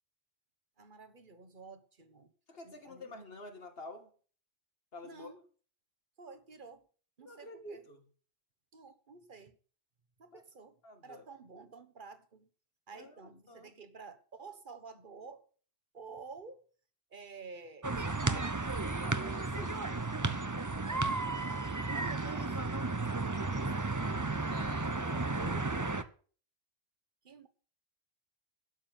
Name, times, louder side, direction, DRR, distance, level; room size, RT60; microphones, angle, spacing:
voice 1, 0.8-2.3 2.6-3.2 5.0-5.4 6.2-6.9 7.2-7.8 8.7-9.6 10.2-10.8 11.0-12.5 12.9-15.4 15.9-16.7 17.1-18.6 21.9-24.3 24.9-25.5 27.2-27.5, right 4 dB, 50° right, 1.5 m, -51 dB
voice 2, 2.5-4.1 4.9-5.3 7.2-8.0 10.3-10.4 10.8-11.2 12.9-13.2 13.5-13.7 19.0-20.1 20.7-21.2 24.5-25.9, left 2 dB, 65° left, 2.2 m, -49 dB
sound 1, 17.8-26.0, right 3 dB, 20° right, 0.8 m, -33 dB
12.0 x 7.3 x 7.6 m
omnidirectional pair, 1.1 m